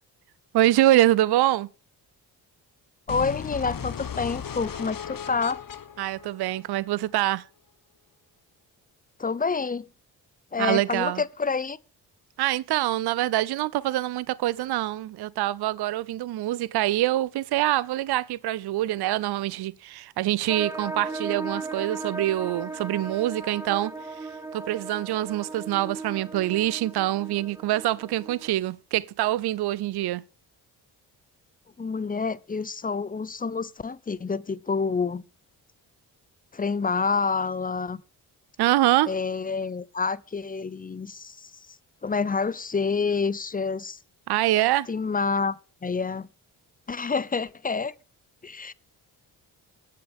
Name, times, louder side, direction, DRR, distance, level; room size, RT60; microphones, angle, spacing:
voice 1, 0.5-1.7 6.0-7.4 10.6-11.2 12.4-30.2 38.6-39.1 44.3-44.9, right 15 dB, 55° right, 0.6 m, -25 dB
sound 1, 3.1-7.1, left 7 dB, 45° left, 1.3 m, -36 dB
voice 2, 3.1-5.6 9.2-9.8 10.5-11.8 31.8-35.2 36.5-38.0 39.1-41.5 42.0-44.0 44.9-45.6 45.8-46.3 46.9-47.9 48.4-48.7, left 4 dB, 20° left, 0.6 m, -28 dB
sound 2, 20.5-28.5, right 3 dB, 5° right, 1.1 m, -36 dB
22.5 x 7.6 x 3.6 m
supercardioid pair, 45°, 46 cm